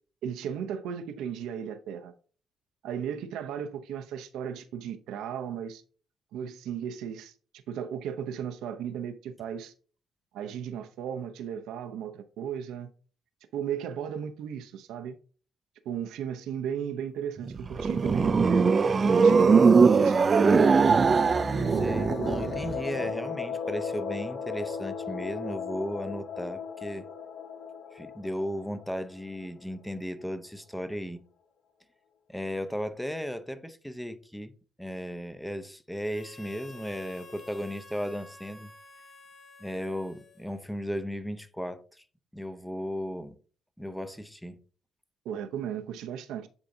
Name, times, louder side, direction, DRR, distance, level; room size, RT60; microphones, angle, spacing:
voice 1, 0.2-2.1 2.8-5.8 6.3-7.3 7.7-9.7 10.3-12.9 13.5-15.2 15.8-18.7 19.1-20.3 45.2-46.5, right 8 dB, 90° right, 0.7 m, -35 dB
sound 1, 17.4-22.8, right 5 dB, 40° right, 0.4 m, -21 dB
sound 2, 21.1-29.7, left 6 dB, 70° left, 0.8 m, -37 dB
voice 2, 21.7-27.1 27.9-31.2 32.3-34.5 34.8-38.7 39.6-42.0 42.3-43.4 43.8-44.6, equal, 5° left, 0.7 m, -35 dB
Harmonica, 36.0-40.8, left 3 dB, 50° left, 2.1 m, -51 dB
9.7 x 3.8 x 2.7 m
cardioid pair, 90°, 0 cm